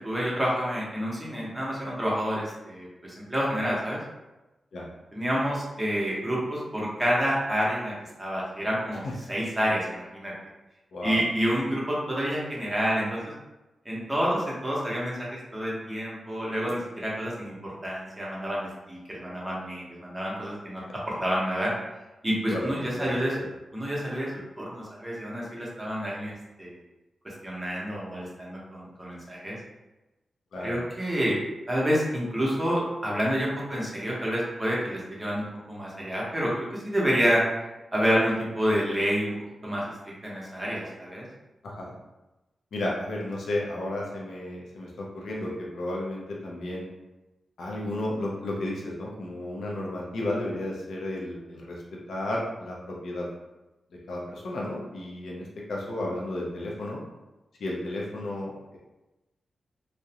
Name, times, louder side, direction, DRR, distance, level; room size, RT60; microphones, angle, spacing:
voice 1, 0.0-4.0 5.1-7.9 8.2-9.0 9.3-10.3 11.0-13.3 13.8-15.3 15.5-21.7 22.2-23.3 23.7-26.3 26.6-26.7 27.2-29.6 30.6-31.4 31.7-37.4 37.9-39.3 39.6-41.3, equal, 15° right, -5 dB, 0.7 m, -28 dB
voice 2, 22.4-23.4 30.5-30.8 41.6-41.9 42.7-46.8 47.6-53.3 54.1-57.0 57.6-58.8, left 1 dB, 80° left, -3 dB, 0.4 m, -33 dB
2.4 x 2.0 x 2.7 m, 1.0 s
wide cardioid pair, 105°, 0 cm